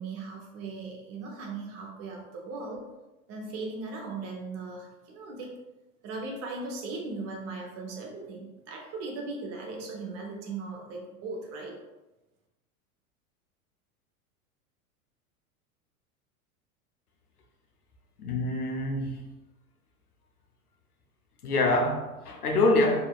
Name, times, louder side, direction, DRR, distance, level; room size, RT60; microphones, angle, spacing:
voice 1, 0.0-2.8 3.3-5.5 6.0-11.8, right 3 dB, 35° right, 0 dB, 0.7 m, -38 dB
voice 2, 18.2-19.3 21.4-23.1, left 2 dB, 90° left, 2 dB, 0.6 m, -25 dB
2.7 x 2.6 x 2.3 m, 1.0 s
figure-of-eight pair, 90°, 44 cm